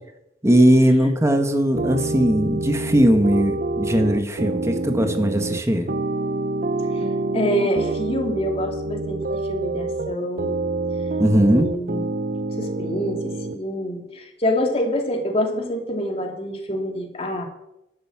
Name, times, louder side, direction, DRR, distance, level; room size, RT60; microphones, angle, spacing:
voice 1, 0.4-5.9 11.2-11.7, equal, 15° right, 6 dB, 1.6 m, -19 dB
sound 1, 1.8-13.6, right 2 dB, 55° right, 0.7 m, -26 dB
voice 2, 7.3-10.6 11.5-12.1 12.6-17.4, equal, 35° left, 2 dB, 2.6 m, -26 dB
13.0 x 9.5 x 7.5 m, 0.86 s
head